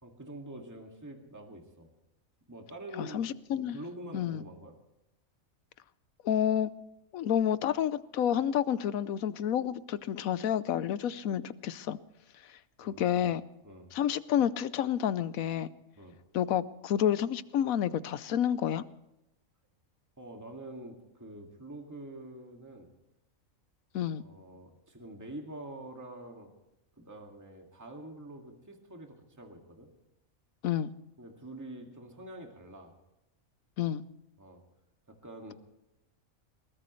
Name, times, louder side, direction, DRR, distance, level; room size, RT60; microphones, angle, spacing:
voice 1, 0.0-1.9 2.5-3.3 3.5-4.8 12.8-13.3 13.6-13.9 16.0-16.2 20.2-22.9 24.2-26.5 27.0-29.9 31.2-32.9 34.4-34.6 35.1-35.5, right 1 dB, 15° right, 2 dB, 2.1 m, -46 dB
voice 2, 3.0-3.8 4.1-4.4 6.2-6.7 7.1-12.0 12.8-13.4 13.9-15.7 16.3-18.8 23.9-24.2 30.6-30.9 33.8-34.0, left 9 dB, 90° left, 15 dB, 1.2 m, -29 dB
21.5 x 19.5 x 3.2 m, 0.89 s
omnidirectional pair, 1.4 m